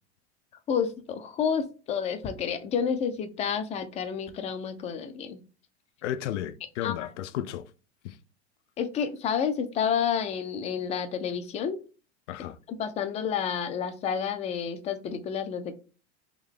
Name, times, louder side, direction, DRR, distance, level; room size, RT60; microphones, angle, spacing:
voice 1, 0.7-5.4 6.8-7.1 8.8-11.8 12.8-15.7, left 7 dB, 20° left, 0.3 m, -30 dB
voice 2, 6.0-7.7 8.0-8.2 12.3-12.6, left 11 dB, 85° left, 0.5 m, -33 dB
3.6 x 2.7 x 3.6 m
supercardioid pair, 130°, 35 cm